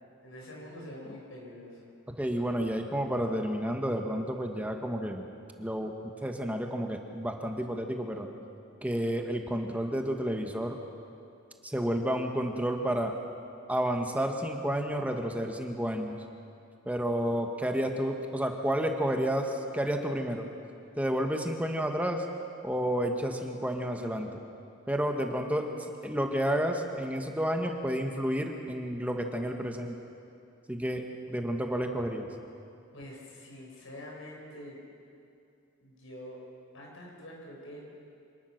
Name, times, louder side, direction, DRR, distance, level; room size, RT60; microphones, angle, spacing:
voice 1, 0.2-1.9 32.9-34.8 35.8-36.4 36.7-37.8, left 1 dB, 70° left, -2 dB, 6.7 m, -45 dB
voice 2, 2.1-5.3 5.6-5.9 6.2-8.3 8.8-10.8 11.6-13.2 13.7-16.2 16.8-20.5 21.0-22.3 22.6-24.4 24.9-25.7 26.0-30.0 30.7-32.3, equal, 5° right, 3 dB, 1.4 m, -30 dB
26.5 x 19.0 x 6.5 m, 2.6 s
head